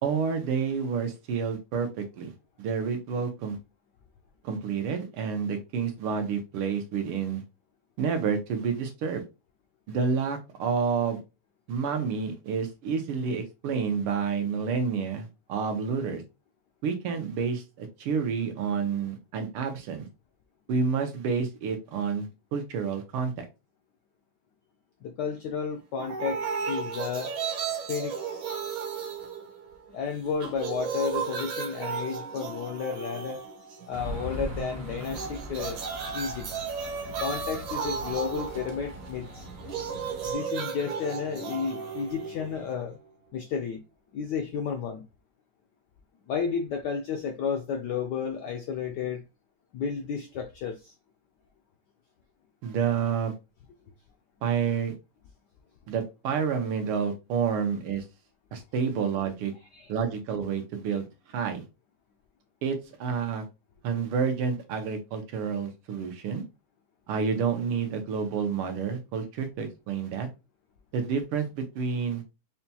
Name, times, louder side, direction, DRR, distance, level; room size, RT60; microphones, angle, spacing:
voice 1, 0.0-2.3 2.6-3.6 4.4-7.4 8.0-9.2 9.9-11.2 11.7-16.2 16.8-20.1 20.7-23.5 52.6-53.3 54.4-54.9 55.9-58.0 58.5-59.5 59.9-61.6 62.6-63.4 63.8-66.4 67.1-70.3 70.9-72.2, right 6 dB, 85° right, 1.7 m, -29 dB
voice 2, 25.0-27.3 27.9-28.5 29.9-33.4 33.9-35.8 36.1-36.5 37.2-39.5 40.2-43.0 43.3-43.8 44.1-45.1 46.3-49.2 49.7-50.9 59.7-59.9, left 6 dB, 80° left, 0.9 m, -32 dB
sound 1, 26.0-30.0 30.3-34.0 35.0-43.0, right 6 dB, 65° right, 1.6 m, -34 dB
sound 2, 33.9-40.3, right 1 dB, 40° right, 0.7 m, -41 dB
5.5 x 2.3 x 2.8 m
omnidirectional pair, 2.4 m